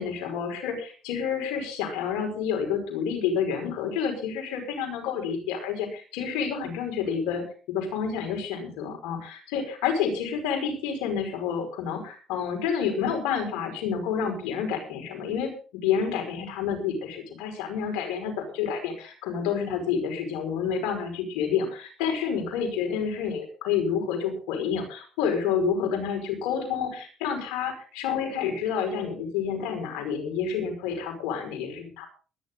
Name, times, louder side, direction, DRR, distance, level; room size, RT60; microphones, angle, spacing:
voice 1, 0.0-32.1, left 7 dB, 90° left, 4 dB, 5.3 m, -29 dB
21.5 x 10.5 x 3.9 m, 0.37 s
supercardioid pair, 85°, 0 cm